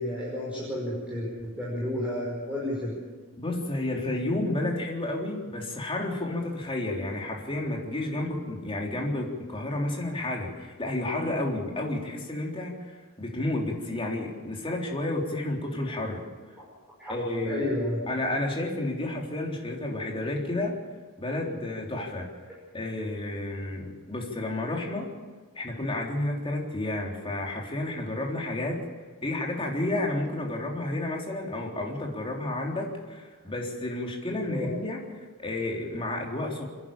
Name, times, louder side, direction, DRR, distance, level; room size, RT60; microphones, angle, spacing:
voice 1, 0.0-2.9 16.6-16.7 17.0-17.1 17.5-18.0 34.5-34.7, left 1 dB, 5° right, -6 dB, 5.6 m, -31 dB
voice 2, 3.4-12.9 13.2-16.2 17.1-17.7 18.1-20.8 21.2-22.3 22.7-25.1 25.6-28.8 29.2-35.0 35.4-36.7, left 2 dB, 25° left, 0 dB, 3.7 m, -31 dB
28.5 x 11.0 x 8.7 m, 1.4 s
head